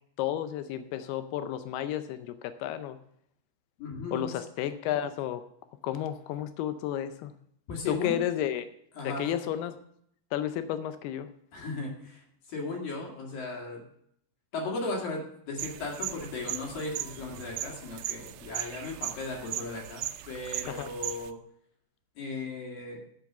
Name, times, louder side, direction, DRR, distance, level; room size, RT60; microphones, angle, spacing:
voice 1, 0.2-3.0 4.1-5.4 5.8-7.3 7.9-8.7 9.0-9.8 10.3-11.3 20.7-20.9, left 11 dB, 85° left, 11 dB, 2.2 m, -32 dB
voice 2, 3.8-4.3 7.7-8.2 8.9-9.3 11.5-12.2 12.5-13.8 14.5-21.4 22.2-23.0, left 3 dB, 55° left, 0 dB, 3.4 m, -36 dB
sound 1, 15.6-21.3, right 14 dB, 80° right, 2.8 m, -38 dB
10.5 x 7.3 x 6.8 m, 0.70 s
omnidirectional pair, 5.4 m